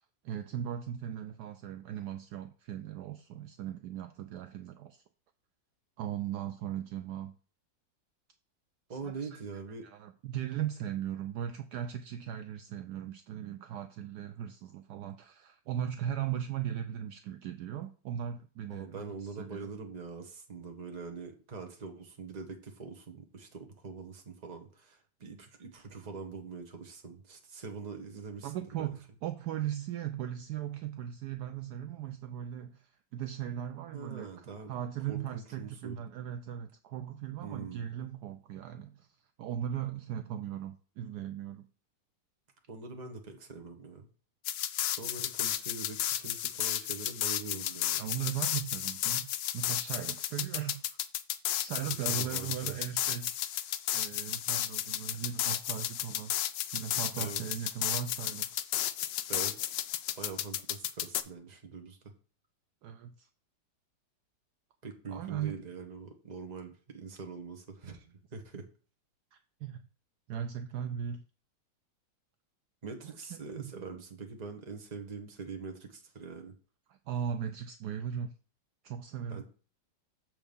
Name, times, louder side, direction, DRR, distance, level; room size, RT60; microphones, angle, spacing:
voice 1, 0.2-5.0 6.0-7.3 8.9-9.4 9.8-19.7 28.4-41.7 48.0-51.0 51.6-56.3 56.7-58.5 62.8-63.3 65.1-65.5 69.3-69.9 70.3-71.2 73.3-73.7 76.9-78.3 78.8-79.4, right 10 dB, 70° right, 1.0 m, -38 dB
voice 2, 8.9-9.8 18.7-28.5 28.8-28.9 33.9-34.7 35.1-36.0 37.4-37.9 42.7-44.1 44.9-48.1 52.2-52.7 57.2-57.6 59.3-59.7 60.1-62.0 64.8-68.7 72.8-76.5 79.3-79.4, right 4 dB, 25° right, 1.1 m, -43 dB
sound 1, 44.4-61.2, left 12 dB, 80° left, 1.2 m, -33 dB
7.1 x 4.6 x 5.3 m
omnidirectional pair, 2.0 m